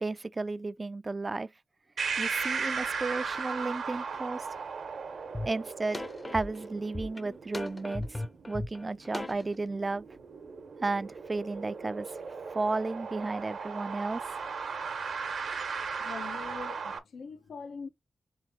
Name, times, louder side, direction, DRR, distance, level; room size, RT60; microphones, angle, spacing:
voice 1, 0.0-1.5 2.2-4.5 5.5-6.0 6.3-8.2 8.5-10.1 10.8-12.1 12.5-14.2, right 3 dB, 40° right, 0.4 m, -33 dB
sound 1, 2.0-17.0, right 5 dB, 80° right, 1.0 m, -37 dB
sound 2, 5.3-5.5 5.9-9.6, left 2 dB, 30° left, 0.7 m, -37 dB
voice 2, 16.0-17.9, left 5 dB, 85° left, 0.8 m, -42 dB
3.5 x 3.2 x 4.3 m
cardioid pair, 40°, 0 cm